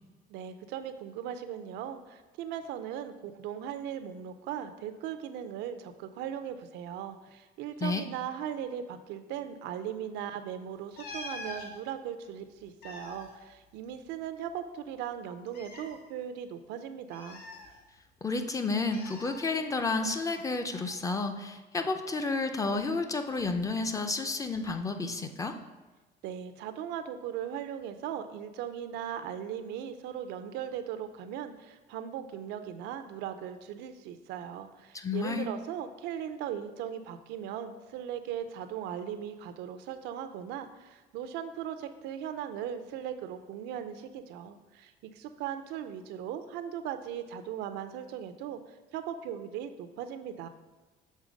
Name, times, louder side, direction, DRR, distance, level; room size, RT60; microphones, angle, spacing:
voice 1, 0.3-17.4 26.2-48.6 48.9-50.5, right 9 dB, 90° right, 9 dB, 0.5 m, -38 dB
sound 1, 11.0-11.7 12.6-14.3 14.5-14.6 15.5-16.0 17.1-18.2 18.9-19.5 20.7-21.0, left 2 dB, 70° left, 1.0 m, -44 dB
voice 2, 18.2-25.6 34.9-35.5, left 3 dB, 20° left, 7 dB, 0.5 m, -31 dB
6.4 x 3.4 x 5.0 m, 1.2 s
cardioid pair, 110°, 17 cm